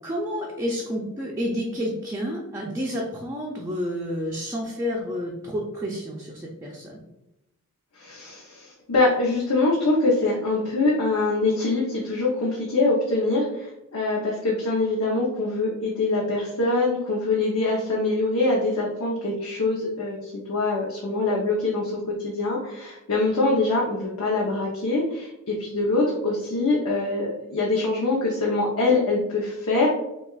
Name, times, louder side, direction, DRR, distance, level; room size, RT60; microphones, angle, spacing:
voice 1, 0.0-7.0, equal, 15° right, -3 dB, 0.5 m, -30 dB
voice 2, 8.0-29.9, left 2 dB, 80° left, -3 dB, 0.8 m, -24 dB
5.9 x 2.4 x 2.4 m, 0.91 s
head